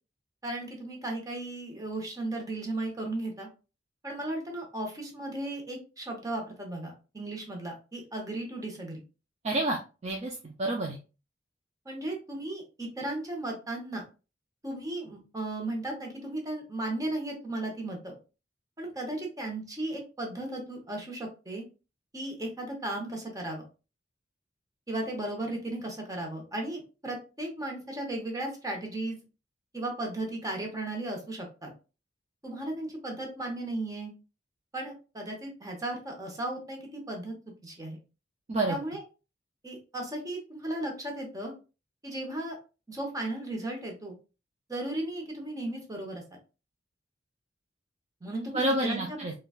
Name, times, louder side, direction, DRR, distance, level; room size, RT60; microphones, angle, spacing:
voice 1, 0.4-3.5 4.0-9.0 11.8-14.0 14.6-18.2 18.8-21.6 22.1-23.6 24.9-29.2 29.7-31.7 32.4-34.1 34.7-37.3 37.6-38.0 38.7-39.0 39.6-41.5 42.0-42.6 42.9-44.1 44.7-46.2 48.2-49.3, right 1 dB, 20° right, 1 dB, 0.9 m, -35 dB
voice 2, 9.4-11.0 38.5-38.8 48.5-49.3, right 1 dB, 35° right, 1 dB, 0.4 m, -29 dB
3.8 x 2.3 x 2.3 m, 0.32 s
head